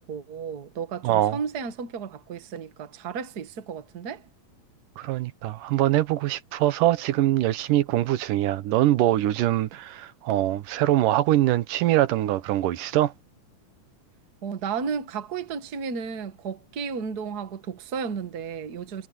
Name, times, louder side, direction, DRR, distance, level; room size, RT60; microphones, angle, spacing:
voice 1, 0.1-4.2 14.4-19.1, right 6 dB, 40° right, 1.6 m, -33 dB
voice 2, 1.0-1.4 5.0-13.1, right 14 dB, 85° right, 2.6 m, -23 dB
omnidirectional pair, 3.7 m